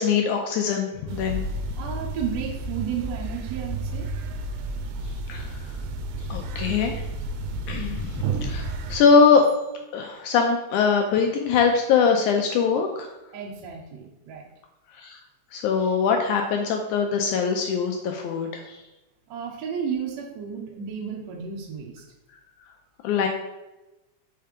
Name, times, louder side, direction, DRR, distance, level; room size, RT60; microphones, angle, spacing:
voice 1, 0.0-1.4 5.3-5.4 6.3-7.0 7.7-9.4 9.9-13.1 15.0-15.2 15.5-18.5 23.0-23.3, left 5 dB, 80° left, 3 dB, 1.8 m, -22 dB
sound 1, 1.1-9.0, right 2 dB, 85° right, 2.2 m, -31 dB
voice 2, 1.8-4.1 13.3-14.5 19.3-22.0, right 7 dB, 70° right, 0 dB, 1.8 m, -33 dB
5.6 x 3.3 x 5.0 m, 1.0 s
omnidirectional pair, 3.9 m